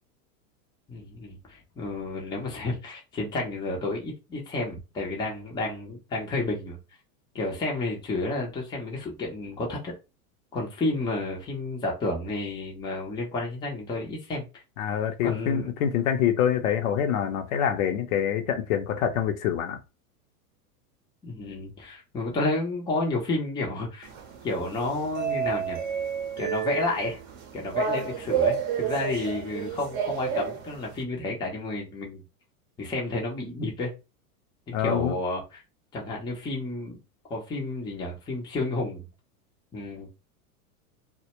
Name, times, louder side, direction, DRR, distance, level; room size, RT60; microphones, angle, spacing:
voice 1, 0.9-6.8 7.3-9.9 10.5-14.5 15.2-15.7 21.2-24.1 24.4-25.8 26.4-27.2 27.5-32.2 32.8-33.9 34.7-35.6 35.9-37.0 37.3-39.1 39.7-40.1, left 2 dB, 10° left, 0.5 m, -31 dB
voice 2, 14.8-19.8 34.7-35.2, left 9 dB, 65° left, 0.6 m, -26 dB
sound 1, 24.0-31.0, right 7 dB, 35° right, 0.7 m, -30 dB
2.1 x 2.0 x 2.9 m
hypercardioid pair, 115°, 44 cm